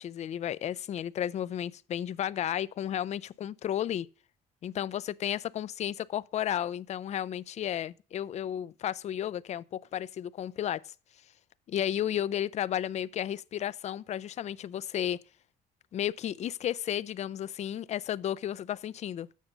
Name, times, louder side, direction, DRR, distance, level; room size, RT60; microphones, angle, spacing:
voice 1, 0.0-4.1 4.6-10.8 11.7-15.2 15.9-19.3, left 10 dB, 40° left, 0.4 m, -33 dB
8.2 x 6.6 x 5.1 m
cardioid pair, 110°, 17 cm